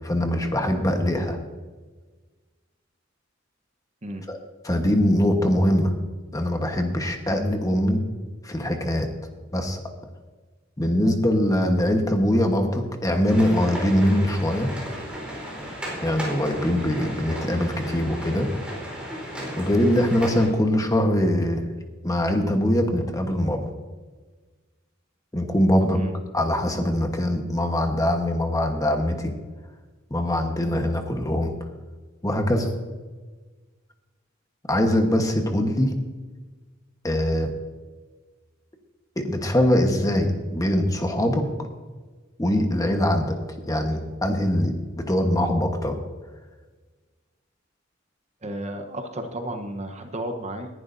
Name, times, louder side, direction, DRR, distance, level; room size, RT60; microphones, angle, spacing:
voice 1, 0.0-1.4 4.3-4.4 4.6-5.9 6.3-8.0 8.4-9.1 9.5-9.8 10.8-14.7 16.0-18.5 19.6-21.6 22.0-23.6 25.3-26.0 26.3-29.3 30.1-31.5 32.2-32.7 34.7-35.9 37.0-37.5 39.2-41.4 42.4-43.4 43.7-46.0, left 1 dB, 20° left, 4 dB, 1.2 m, -22 dB
sound 1, 13.3-20.5, equal, 5° right, 4.3 m, -35 dB
voice 2, 48.4-50.7, right 1 dB, 35° right, 5 dB, 1.0 m, -33 dB
19.0 x 11.0 x 2.7 m, 1.3 s
head